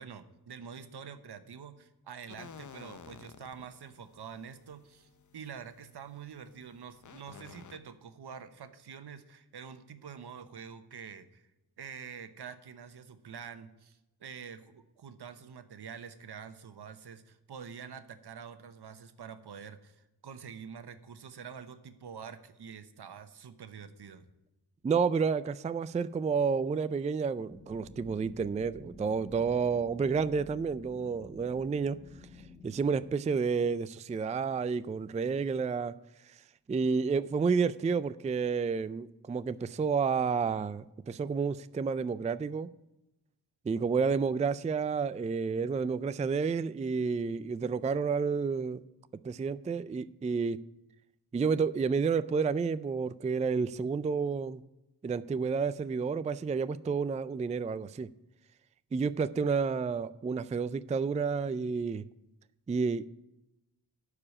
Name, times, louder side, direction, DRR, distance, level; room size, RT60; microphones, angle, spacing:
voice 1, 0.0-11.5 11.8-24.3, right 7 dB, 75° right, 1.0 m, -46 dB
sound 1, 2.3-7.8, left 6 dB, 50° left, 0.7 m, -53 dB
voice 2, 24.8-32.0 32.6-35.9 36.7-42.7 43.7-48.8 49.2-50.6 51.3-54.6 55.0-58.1 58.9-62.0 62.7-63.2, right 5 dB, 20° right, 0.3 m, -30 dB
sound 2, 27.5-33.1, left 2 dB, 10° left, 1.0 m, -52 dB
12.0 x 4.9 x 8.6 m
wide cardioid pair, 95°, 40 cm